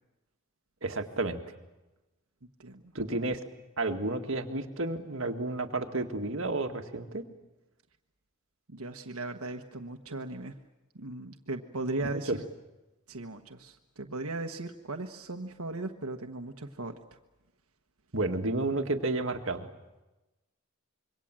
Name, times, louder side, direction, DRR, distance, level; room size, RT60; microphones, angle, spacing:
voice 1, 0.8-1.5 2.9-3.4 3.8-7.2 12.1-12.4 18.1-19.7, right 2 dB, 65° right, 5 dB, 2.0 m, -31 dB
voice 2, 2.6-2.9 8.7-10.5 10.9-12.4 13.1-16.9, right 2 dB, 85° right, 4 dB, 1.3 m, -37 dB
26.5 x 23.5 x 7.6 m, 1.0 s
head